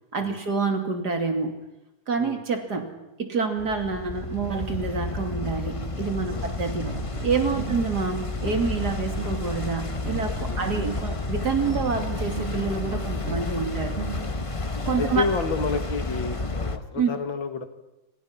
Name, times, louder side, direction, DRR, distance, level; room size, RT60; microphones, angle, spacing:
voice 1, 0.1-1.6 2.1-2.9 3.2-6.9 7.2-13.9 14.9-15.2 16.9-17.1, right 5 dB, 55° right, 5 dB, 3.2 m, -27 dB
sound 1, 3.6-16.8, left 3 dB, 20° left, 1.0 m, -31 dB
sound 2, 6.7-8.0 8.3-9.6 9.9-11.2 11.5-14.3, right 4 dB, 35° right, 1.6 m, -37 dB
voice 2, 15.0-17.7, left 4 dB, 90° left, 7 dB, 2.9 m, -30 dB
27.5 x 27.0 x 5.9 m, 0.98 s
omnidirectional pair, 2.1 m